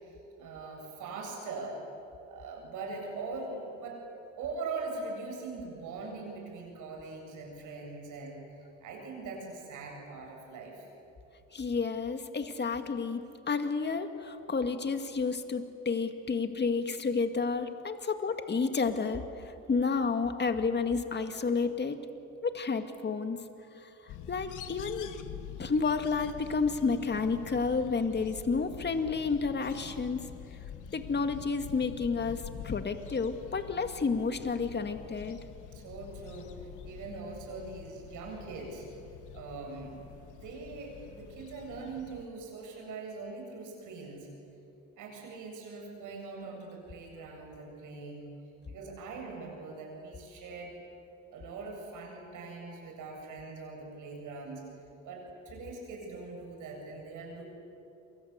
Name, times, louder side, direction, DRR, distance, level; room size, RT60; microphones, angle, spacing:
voice 1, 0.4-1.8 2.3-4.0 4.4-10.9 35.7-38.9 39.3-40.0 40.3-44.3 45.0-48.3 48.7-50.7 51.3-54.6 55.0-57.4, right 3 dB, 85° right, 1 dB, 7.8 m, -42 dB
voice 2, 11.5-19.2 19.7-22.0 22.4-23.4 23.8-23.9 24.3-25.1 25.6-30.3 30.9-35.4, left 4 dB, 35° left, 7 dB, 2.2 m, -30 dB
sound 1, 24.1-42.3, left 9 dB, 80° left, 1.6 m, -46 dB
29.5 x 24.5 x 8.3 m, 2.9 s
cardioid pair, 90°, 30 cm